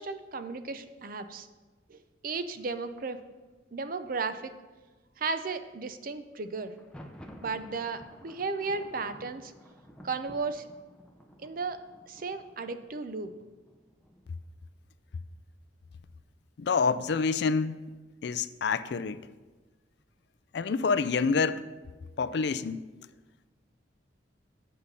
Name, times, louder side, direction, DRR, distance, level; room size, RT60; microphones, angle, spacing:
voice 1, 0.0-1.5 1.9-2.0 2.2-3.2 3.7-4.5 5.2-6.7 7.4-9.5 10.0-10.7 11.4-11.8 12.1-13.3, right 4 dB, 50° right, 10 dB, 0.6 m, -34 dB
Thunder, 6.7-14.4, equal, 5° left, 0.6 m, -52 dB
voice 2, 16.6-17.8 18.2-19.2 20.5-21.6 22.2-22.8, left 5 dB, 60° left, 14 dB, 0.4 m, -27 dB
8.4 x 5.6 x 6.7 m, 1.2 s
head